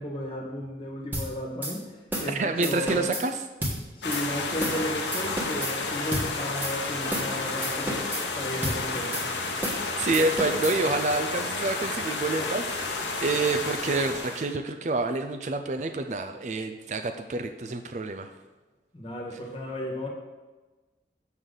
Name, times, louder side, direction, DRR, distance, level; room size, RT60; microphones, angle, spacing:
voice 1, 0.0-3.0 3.9-9.4 18.9-20.1, left 1 dB, 30° left, -1 dB, 1.4 m, -34 dB
sound 1, 1.1-1.3 1.6-1.7 2.1-2.3 2.6-3.2 3.6-3.8 4.1-4.2 4.6-4.8 5.1-5.7 6.1-6.3 6.6-6.7 7.1-7.3 7.6-8.2 8.6-8.8 9.1-9.3 9.6-9.8 10.1-10.8, right 1 dB, 10° right, 1.3 m, -31 dB
voice 2, 2.3-3.3 9.5-18.3, right 3 dB, 40° right, 6 dB, 0.4 m, -28 dB
sound 2, 4.0-14.5, left 3 dB, 90° left, 1.0 m, -31 dB
7.0 x 6.3 x 3.8 m, 1.2 s
head